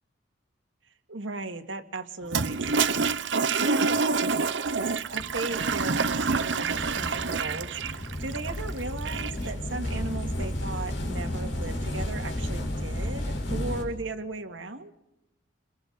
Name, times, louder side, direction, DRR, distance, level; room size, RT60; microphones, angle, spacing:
voice 1, 1.1-14.9, right 2 dB, 90° right, 6 dB, 2.1 m, -37 dB
Toilet flush, 2.2-9.5, right 4 dB, 70° right, 0.9 m, -27 dB
sound 1, 5.1-13.8, left 1 dB, 80° left, 4.6 m, -33 dB
29.0 x 21.5 x 4.1 m, 0.90 s
head